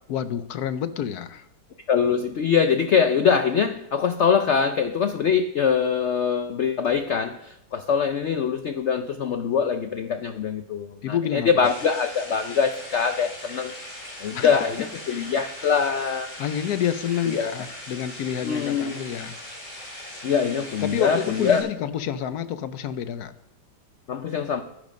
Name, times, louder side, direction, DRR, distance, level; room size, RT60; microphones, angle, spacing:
voice 1, 0.1-1.4 11.0-11.5 14.3-14.6 15.1-15.3 16.4-19.4 20.8-23.3, left 9 dB, 65° left, 12 dB, 1.1 m, -28 dB
voice 2, 1.9-13.7 14.2-16.3 17.3-17.6 18.4-19.0 20.2-21.7 24.1-24.6, left 6 dB, 85° left, 8 dB, 0.6 m, -23 dB
sound 1, 11.6-21.6, left 1 dB, 40° left, 4.5 m, -40 dB
11.0 x 10.5 x 5.2 m, 0.82 s
omnidirectional pair, 2.0 m